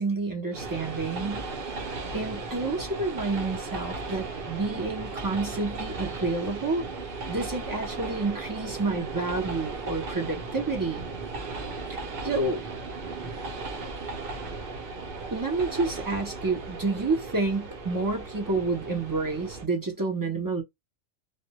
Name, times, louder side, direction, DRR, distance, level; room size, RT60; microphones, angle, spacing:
voice 1, 0.0-1.4 2.1-6.8 7.3-11.1 11.9-12.6 13.2-13.3 15.3-20.6, right 3 dB, 35° right, 0.3 m, -29 dB
Train, 0.5-19.7, right 3 dB, 55° right, 0.7 m, -36 dB
2.1 x 2.1 x 2.8 m
omnidirectional pair, 1.4 m